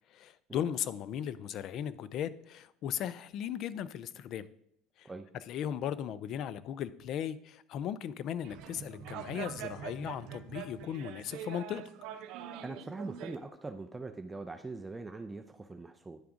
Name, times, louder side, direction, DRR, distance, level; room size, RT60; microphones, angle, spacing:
voice 1, 0.1-4.5 5.0-5.1 5.5-11.8, left 9 dB, 50° left, 16 dB, 0.4 m, -37 dB
sound 1, 8.4-13.3, right 9 dB, 65° right, 0.6 m, -44 dB
voice 2, 12.6-16.2, right 3 dB, 15° right, 7 dB, 0.4 m, -42 dB
9.6 x 3.4 x 5.0 m, 0.71 s
supercardioid pair, 115°, 0 cm